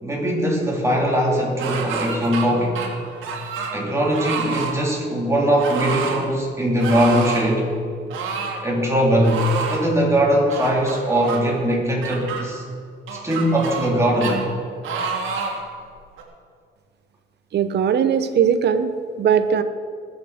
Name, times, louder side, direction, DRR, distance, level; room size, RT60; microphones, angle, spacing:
voice 1, 0.0-2.8 3.7-7.6 8.6-12.6 13.1-14.5, equal, 15° right, -3 dB, 3.8 m, -20 dB
sound 1, 1.6-2.5 2.8-3.8 4.1-4.8 5.6-6.2 6.8-7.5 8.1-8.6 9.2-9.8 10.5-11.4 12.0-12.4 13.1-13.9 14.2-14.4 14.8-15.6 16.2-16.3, right 6 dB, 85° right, 2.1 m, -28 dB
voice 2, 17.5-19.6, right 7 dB, 60° right, 11 dB, 0.8 m, -19 dB
20.0 x 7.4 x 5.1 m, 2.2 s
cardioid pair, 90°, 20 cm